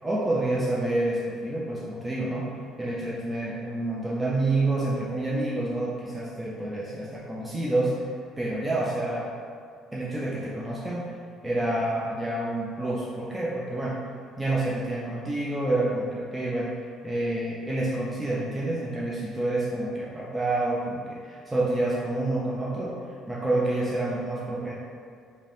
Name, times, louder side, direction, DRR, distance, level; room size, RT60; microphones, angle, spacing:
voice 1, 0.0-8.1 8.4-9.3 9.9-11.1 11.4-14.0 14.4-16.7 17.0-23.0 23.3-24.7, right 2 dB, 10° right, -6 dB, 0.3 m, -28 dB
3.2 x 2.0 x 2.6 m, 2.2 s
cardioid pair, 115°, 0 cm